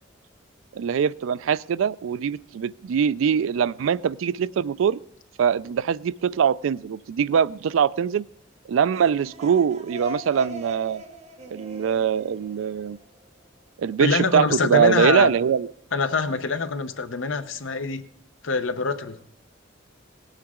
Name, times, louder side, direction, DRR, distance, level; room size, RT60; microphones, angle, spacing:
voice 1, 0.7-5.0 5.4-8.2 8.7-11.0 11.5-13.0 13.8-15.7, right 7 dB, 80° right, 19 dB, 0.3 m, -22 dB
sound 1, 8.9-13.4, equal, 35° right, 0.9 m, -40 dB
voice 2, 14.0-15.3 15.9-18.0 18.4-19.2, left 4 dB, 75° left, 9 dB, 0.8 m, -24 dB
17.5 x 8.9 x 3.7 m, 0.75 s
head